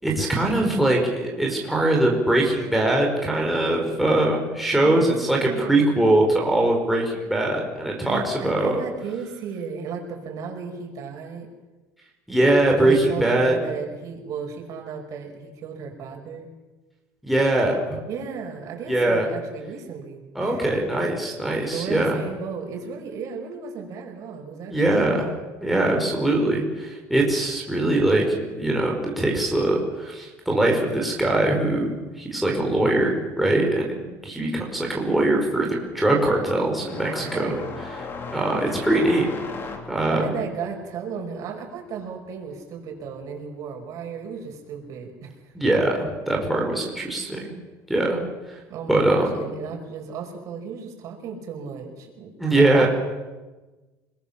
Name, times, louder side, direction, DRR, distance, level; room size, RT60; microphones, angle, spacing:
voice 1, 0.0-8.8 12.3-13.5 17.2-18.0 18.9-19.3 20.3-22.2 24.7-25.3 25.6-35.7 35.9-37.5 38.3-39.3 39.9-40.3 45.5-47.5 47.9-48.2 48.5-48.6 48.9-49.4 52.4-52.9, right 1 dB, ahead, -1 dB, 5.0 m, -22 dB
voice 2, 4.8-6.0 8.0-11.5 12.8-16.5 18.1-20.6 21.7-25.4 37.2-37.6 40.1-45.5 47.2-47.3 48.7-52.9, right 6 dB, 50° right, 2 dB, 6.1 m, -35 dB
sound 1, 34.3-34.6 34.9-43.2 43.5-44.5 45.5-45.6 46.4-46.5 48.3-48.4, left 3 dB, 35° left, 3.5 m, -37 dB
30.0 x 21.5 x 7.4 m, 1.2 s
cardioid pair, 145°, 7 cm